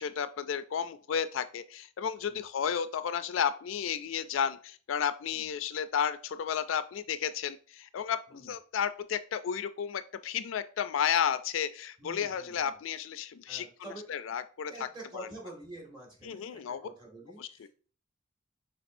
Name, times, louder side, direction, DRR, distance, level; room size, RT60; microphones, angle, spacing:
voice 1, 0.0-13.7 14.1-14.7 15.1-15.3 16.2-16.8 17.4-17.7, left 8 dB, 75° left, 12 dB, 0.4 m, -32 dB
voice 2, 12.0-12.8 13.5-14.1 14.7-17.7, right 2 dB, 25° right, -2 dB, 1.8 m, -48 dB
5.9 x 3.4 x 2.6 m, 0.41 s
head